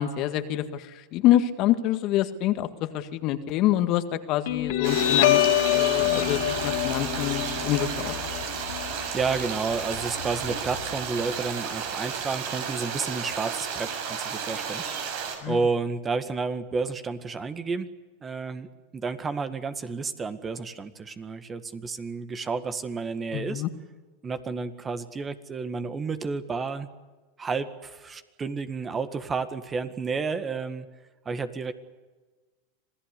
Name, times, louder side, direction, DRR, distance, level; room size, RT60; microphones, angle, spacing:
voice 1, 0.0-5.4 5.7-8.1 15.4-15.6 23.3-23.7, left 12 dB, 50° left, 9 dB, 1.9 m, -26 dB
Guitar, 4.5-11.5, left 14 dB, 70° left, 2.6 m, -26 dB
sound 1, 4.8-15.4, right 6 dB, 65° right, 6.3 m, -33 dB
voice 2, 8.8-17.9 18.2-23.6 24.2-26.9 27.4-30.9 31.3-31.7, right 4 dB, 20° right, 11 dB, 1.8 m, -31 dB
26.5 x 17.0 x 8.4 m, 1.3 s
hypercardioid pair, 110°, 0 cm